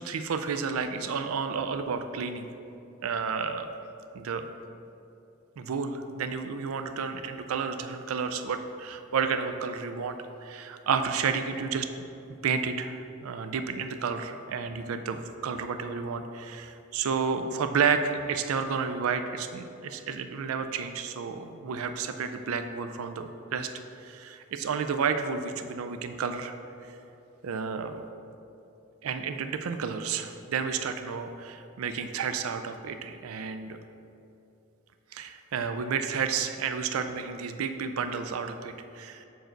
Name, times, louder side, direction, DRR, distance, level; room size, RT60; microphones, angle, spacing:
voice 1, 0.0-2.5 3.0-3.7 4.1-4.5 5.6-11.9 12.4-23.7 24.0-26.5 27.4-28.0 29.0-33.8 35.1-39.2, right 6 dB, 85° right, 8 dB, 0.4 m, -31 dB
6.5 x 4.6 x 4.5 m, 2.8 s
head